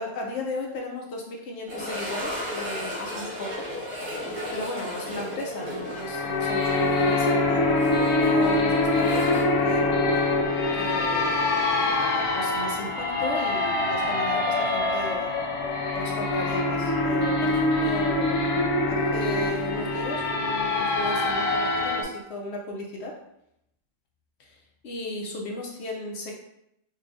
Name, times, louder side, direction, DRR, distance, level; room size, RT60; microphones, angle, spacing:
voice 1, 0.0-3.7 4.5-10.4 10.7-15.3 15.9-23.2 24.4-24.6 24.8-26.3, left 1 dB, 60° left, -1 dB, 0.7 m, -35 dB
sound 1, 1.7-10.6 10.8-10.9 11.6-11.7 14.3-14.4, left 1 dB, 70° right, 1.5 m, -35 dB
sound 2, 5.9-22.0, left 2 dB, 90° left, 1.2 m, -24 dB
5.2 x 2.3 x 2.5 m, 0.79 s
omnidirectional pair, 1.5 m